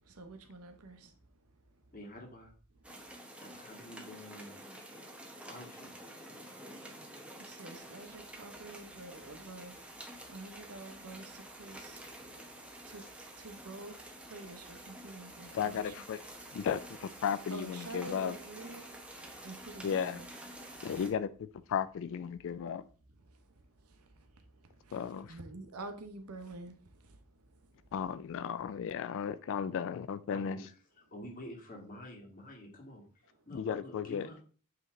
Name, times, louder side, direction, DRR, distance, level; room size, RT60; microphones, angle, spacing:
voice 1, 0.2-1.1 7.4-9.7 10.3-11.3 11.6-12.0 12.9-13.0 13.4-13.9 14.3-15.9 17.5-18.9 19.4-20.3 25.3-26.7, right 2 dB, 75° right, 0.9 m, -47 dB
voice 2, 1.9-2.5 3.4-4.6 5.5-5.9 30.3-34.4, left 1 dB, 40° left, 1.7 m, -49 dB
sound 1, 2.8-21.1, right 1 dB, 5° right, 0.8 m, -49 dB
voice 3, 15.5-16.2 16.5-18.4 19.8-20.2 20.8-22.8 24.9-25.3 27.9-30.6 33.5-34.3, left 7 dB, 60° left, 0.3 m, -35 dB
7.8 x 3.3 x 3.7 m
head